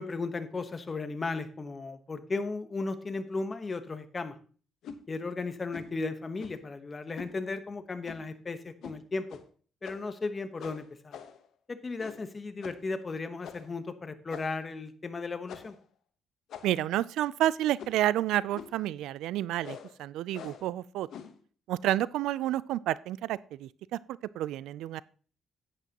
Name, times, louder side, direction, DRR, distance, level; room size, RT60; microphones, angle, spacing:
voice 1, 0.0-4.4 5.1-9.3 9.8-11.2 11.7-15.8, left 3 dB, 30° left, 10 dB, 1.0 m, -35 dB
sound 1, 4.8-5.0 5.7-6.0 6.4-6.7 7.2-7.3 8.0-8.3 8.8-9.0 9.3-9.4 9.8-10.2 10.6-11.5 12.0-12.3 12.6-12.9 13.4-13.7 14.3-14.7 15.5-15.8 16.5-16.9 17.8-18.1 18.5-18.8 19.6-19.9 20.3-20.7 21.1-21.4, left 8 dB, 75° left, 1.0 m, -45 dB
voice 2, 16.6-21.1 21.7-24.0 24.3-25.0, right 13 dB, 90° right, 20 dB, 0.3 m, -30 dB
10.5 x 9.2 x 2.9 m, 0.41 s
cardioid pair, 90°, 0 cm